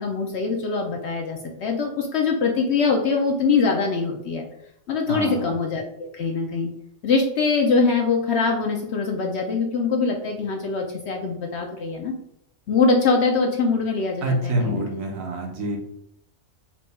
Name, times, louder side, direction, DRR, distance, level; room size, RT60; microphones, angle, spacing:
voice 1, 0.0-4.4 4.9-6.7 7.0-12.1 12.7-14.8, left 4 dB, 65° left, 2 dB, 0.7 m, -23 dB
voice 2, 5.1-5.5 14.2-15.8, right 1 dB, 70° right, 1 dB, 1.3 m, -26 dB
4.3 x 2.2 x 4.1 m, 0.76 s
omnidirectional pair, 1.5 m